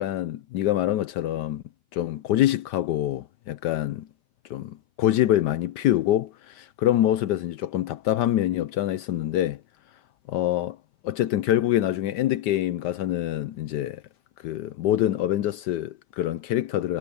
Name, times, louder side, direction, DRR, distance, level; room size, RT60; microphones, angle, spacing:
voice 1, 0.0-1.6 1.9-4.1 4.5-9.6 10.3-10.8 11.0-14.0 14.4-17.0, left 13 dB, 75° left, 1.2 m, -25 dB
omnidirectional pair, 1.9 m